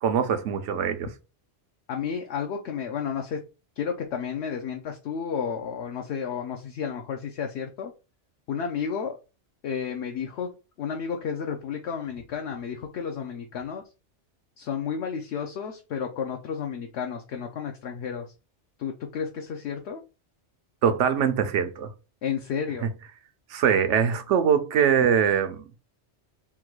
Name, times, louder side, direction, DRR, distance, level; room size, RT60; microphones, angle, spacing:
voice 1, 0.0-1.1 20.8-21.9 23.5-25.7, right 8 dB, 80° right, 1.0 m, -23 dB
voice 2, 1.9-3.4 3.8-7.9 8.5-9.2 9.6-10.5 10.8-13.8 14.6-18.3 18.8-20.0 22.2-22.8, left 7 dB, 70° left, 0.9 m, -32 dB
3.6 x 2.3 x 4.5 m
omnidirectional pair, 1.2 m